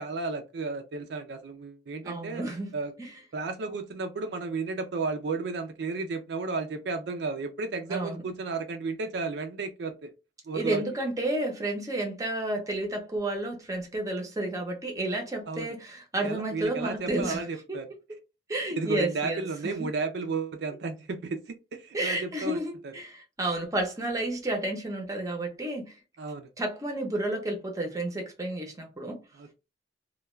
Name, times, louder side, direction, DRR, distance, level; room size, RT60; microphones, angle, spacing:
voice 1, 0.0-2.4 2.7-2.9 3.3-10.1 10.5-10.8 15.5-15.7 16.2-17.9 18.8-21.4 21.7-22.6 22.8-22.9 26.2-26.5 29.4-29.5, right 4 dB, 65° right, 0.4 m, -33 dB
voice 2, 2.0-2.7 3.0-3.1 7.9-8.2 10.5-17.8 18.5-19.9 21.9-26.0 26.6-29.2, right 1 dB, 20° right, 0.6 m, -31 dB
2.2 x 2.2 x 3.0 m
head